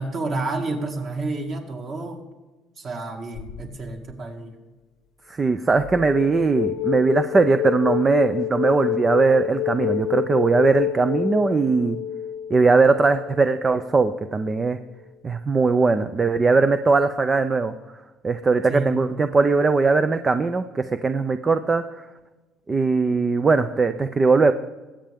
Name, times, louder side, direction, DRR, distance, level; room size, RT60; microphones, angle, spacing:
voice 1, 0.0-2.2 2.8-4.5 18.7-19.0, right 2 dB, 35° right, 2 dB, 2.1 m, -30 dB
sound 1, 3.4-4.1 5.8-13.4, left 12 dB, 55° left, 0.8 m, -28 dB
voice 2, 5.3-12.0 12.5-14.8 15.2-17.7 18.2-21.8 22.7-24.5, right 4 dB, 20° right, 10 dB, 0.5 m, -20 dB
21.0 x 8.8 x 3.6 m, 1.2 s
cardioid pair, 170°, 0 cm